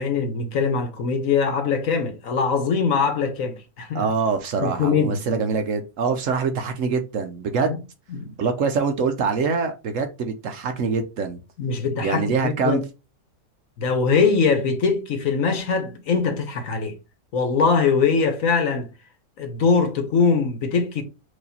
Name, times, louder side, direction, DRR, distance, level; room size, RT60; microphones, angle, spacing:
voice 1, 0.0-4.0 4.6-5.2 7.7-7.8 8.1-8.3 11.6-12.8 13.8-16.9 17.3-18.9 19.4-21.0, left 5 dB, 60° left, 1.3 m, -22 dB
voice 2, 3.9-7.7 8.4-11.4 12.0-12.8, right 5 dB, 65° right, 0.9 m, -24 dB
4.9 x 2.6 x 4.1 m
omnidirectional pair, 1.6 m